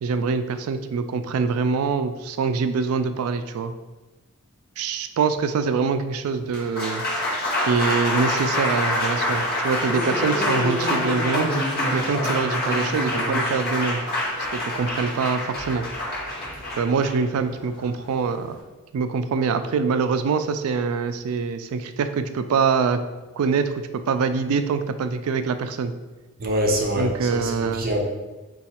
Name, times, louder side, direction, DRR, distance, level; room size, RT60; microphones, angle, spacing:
voice 1, 0.0-3.7 4.8-7.0 7.7-11.5 11.9-14.0 14.4-15.8 16.8-18.6 18.9-23.0 23.3-25.9 27.0-27.9, right 5 dB, 80° right, 9 dB, 0.3 m, -24 dB
Applause, 6.4-18.6, left 1 dB, 45° left, 0.7 m, -26 dB
voice 2, 26.4-28.0, equal, 40° right, 1 dB, 0.6 m, -24 dB
4.1 x 2.3 x 4.2 m, 1.2 s
head